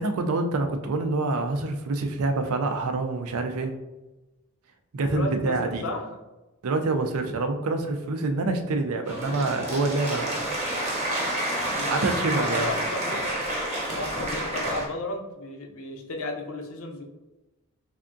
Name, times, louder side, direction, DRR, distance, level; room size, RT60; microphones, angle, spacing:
voice 1, 0.0-3.7 4.9-5.8 6.6-10.5 11.9-12.7, right 3 dB, 75° right, 6 dB, 0.4 m, -26 dB
voice 2, 5.1-6.1 11.7-12.0 12.4-13.2 14.0-17.0, left 2 dB, 70° left, 2 dB, 0.6 m, -34 dB
sound 1, 9.1-14.9, right 1 dB, 30° right, 0.8 m, -29 dB
3.6 x 3.4 x 2.6 m, 1.1 s
head